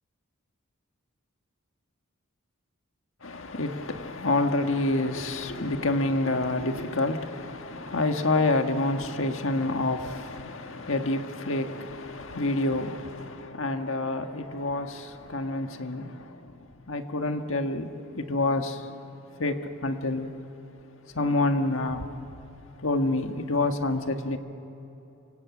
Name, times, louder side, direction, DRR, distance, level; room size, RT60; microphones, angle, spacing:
voice 1, 3.2-19.0 19.3-20.3 21.1-22.2 22.8-24.4, left 2 dB, 65° left, 1.7 m, -28 dB
27.0 x 25.0 x 8.5 m
head